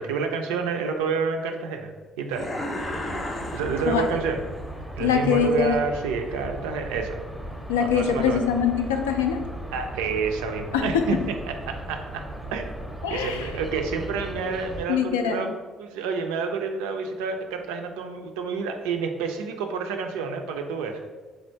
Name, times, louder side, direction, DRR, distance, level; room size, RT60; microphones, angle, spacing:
voice 1, 0.0-1.9 2.2-2.5 3.5-4.4 5.0-7.2 7.8-8.4 9.7-12.2 12.5-12.7 13.1-21.1, right 5 dB, 70° right, 5 dB, 0.3 m, -29 dB
sound 1, 2.3-4.6, left 1 dB, 35° left, 0.6 m, -34 dB
sound 2, 2.8-14.9, right 1 dB, ahead, 0.6 m, -37 dB
voice 2, 5.0-5.8 7.7-9.5 10.7-11.1 13.0-13.5 14.9-15.5, left 7 dB, 80° left, 5 dB, 0.3 m, -23 dB
3.3 x 2.4 x 4.4 m, 1.4 s
figure-of-eight pair, 50°, 0 cm